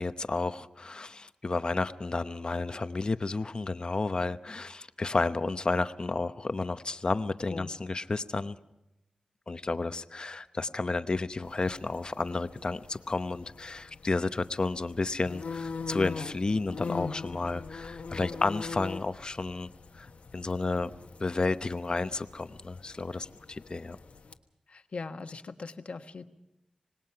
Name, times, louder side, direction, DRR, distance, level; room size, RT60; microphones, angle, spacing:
voice 1, 0.0-8.6 9.5-19.7 19.9-20.1 20.3-20.9 21.2-24.0, left 3 dB, 40° left, 11 dB, 0.9 m, -31 dB
sound 1, 11.4-24.3, left 4 dB, 85° left, 1.3 m, -42 dB
voice 2, 24.7-26.2, left 4 dB, 65° left, 8 dB, 1.3 m, -40 dB
26.0 x 19.5 x 5.8 m, 0.90 s
wide cardioid pair, 80°, 2 cm